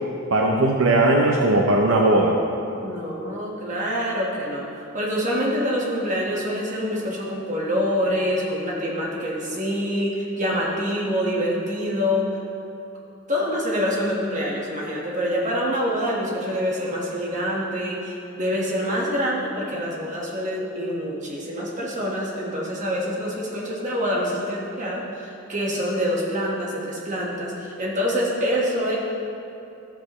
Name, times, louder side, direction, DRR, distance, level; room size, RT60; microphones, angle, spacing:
voice 1, 0.3-2.4, right 2 dB, 65° right, 0 dB, 0.7 m, -18 dB
voice 2, 2.8-12.4 13.3-29.0, equal, 35° right, -4 dB, 1.5 m, -26 dB
13.0 x 8.2 x 3.1 m, 2.8 s
head